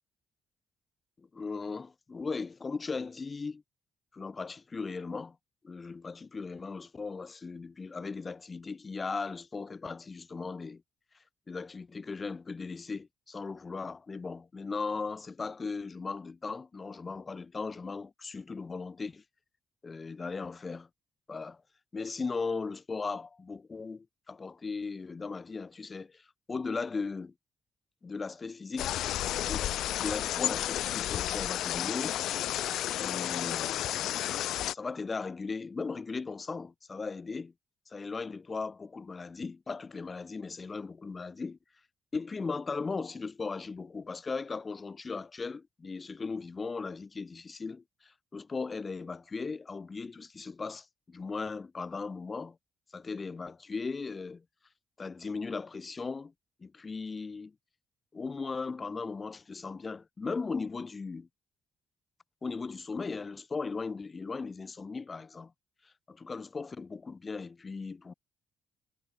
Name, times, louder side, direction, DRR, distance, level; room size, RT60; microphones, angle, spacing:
voice 1, 1.2-3.6 4.1-5.4 5.6-10.8 11.5-19.2 19.8-20.9 21.3-21.6 21.9-27.3 28.0-29.0 29.3-29.7 29.9-32.2 33.0-34.3 34.7-37.5 37.9-41.6 42.1-52.6 52.9-54.4 55.0-56.3 56.6-57.5 58.1-61.3 62.4-65.5 65.8-68.1, left 4 dB, 30° left, 4.8 m, -37 dB
sound 1, 28.8-34.7, left 13 dB, 80° left, 0.8 m, -32 dB
cardioid pair, 90°, 0 cm